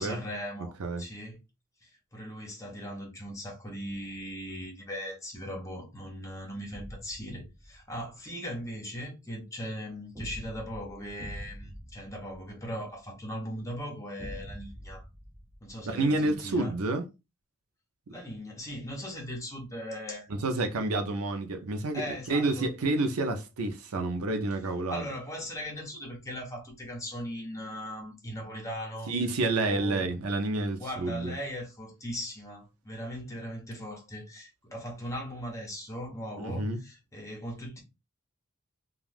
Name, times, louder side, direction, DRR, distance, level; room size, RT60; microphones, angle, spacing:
voice 1, 0.0-1.4 1.8-15.0 15.6-16.8 18.1-20.3 21.9-22.7 24.9-29.1 29.6-30.1 30.8-37.8, equal, 15° left, 0.8 m, -39 dB
sound 1, 6.7-8.1 10.2-13.1 14.2-16.3, equal, 15° right, 0.4 m, -45 dB
voice 2, 15.8-17.0 20.3-25.1 29.1-31.4 36.4-36.8, right 2 dB, 85° right, 0.5 m, -29 dB
2.4 x 2.3 x 3.2 m
head